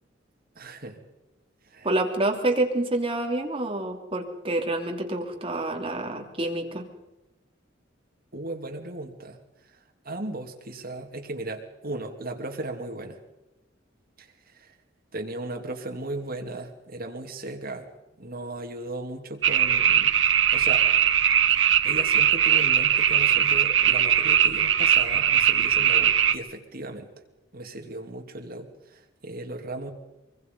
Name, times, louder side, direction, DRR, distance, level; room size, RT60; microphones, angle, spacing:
voice 1, 0.5-1.0 1.6-1.9 8.3-9.4 10.0-13.2 14.2-14.7 15.1-17.9 18.2-20.1 20.5-20.8 21.6-27.1 27.5-29.9, right 2 dB, 50° right, 3 dB, 2.8 m, -36 dB
voice 2, 1.8-6.8, right 2 dB, 30° right, 2 dB, 3.1 m, -27 dB
sound 1, 19.4-26.4, right 9 dB, 80° right, 1.2 m, -20 dB
24.5 x 23.5 x 5.5 m, 0.99 s
head